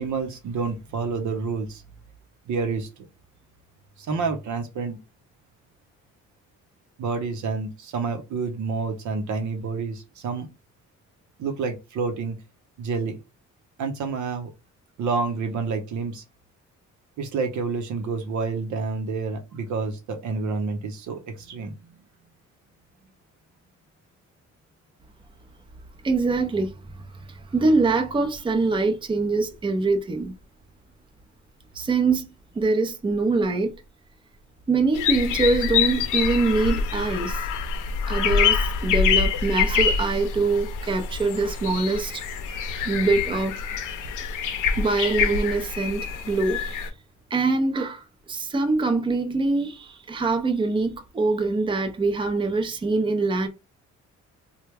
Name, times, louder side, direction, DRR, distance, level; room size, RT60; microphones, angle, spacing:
voice 1, 0.0-1.8 2.5-2.9 4.0-5.0 7.0-10.5 11.4-12.4 12.8-13.2 13.8-14.5 15.0-16.2 17.2-21.8, right 4 dB, 75° right, 0.8 m, -28 dB
voice 2, 26.0-30.4 31.7-32.3 32.5-33.7 34.7-37.5 38.1-42.2 42.8-43.6 44.8-46.9 47.3-53.5, right 3 dB, 15° right, 0.5 m, -24 dB
sound 1, 34.9-46.9, left 6 dB, 85° left, 0.7 m, -25 dB
3.2 x 2.2 x 3.3 m
cardioid pair, 90°, 30 cm